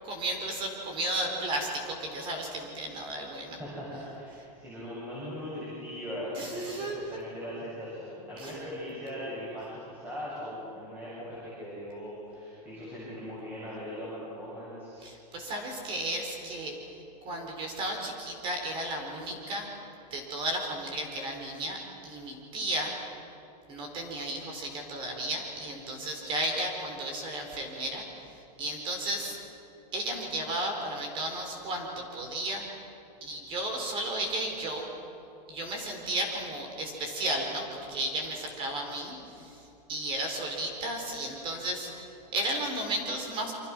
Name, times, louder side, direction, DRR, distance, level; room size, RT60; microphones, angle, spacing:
voice 1, 0.0-3.6 6.4-7.2 8.4-8.5 15.0-16.7 17.3-19.7 20.1-22.9 23.7-28.0 28.6-29.4 29.9-32.7 33.2-34.9 35.5-39.6 39.9-43.5, right 1 dB, 25° right, 3 dB, 4.2 m, -34 dB
voice 2, 3.6-15.0, equal, 10° right, -8 dB, 7.6 m, -39 dB
28.5 x 25.5 x 6.2 m, 2.8 s
supercardioid pair, 165°, 21 cm